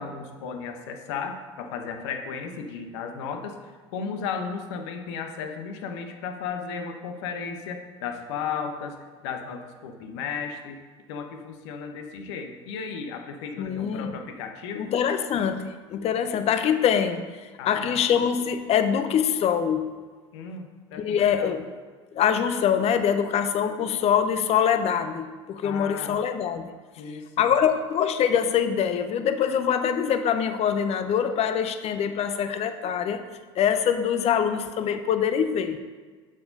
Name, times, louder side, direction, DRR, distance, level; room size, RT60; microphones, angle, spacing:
voice 1, 0.0-3.5 3.9-8.9 9.2-10.8 11.1-14.9 17.6-18.0 20.3-21.6 25.6-26.1 27.0-27.5, left 6 dB, 70° left, 5 dB, 1.0 m, -35 dB
voice 2, 13.6-14.1 14.8-17.3 17.7-19.9 21.0-21.6 22.1-26.7 27.4-33.2 33.6-35.8, left 8 dB, 45° left, 9 dB, 0.7 m, -24 dB
6.9 x 6.1 x 5.2 m, 1.4 s
hypercardioid pair, 70°, 15 cm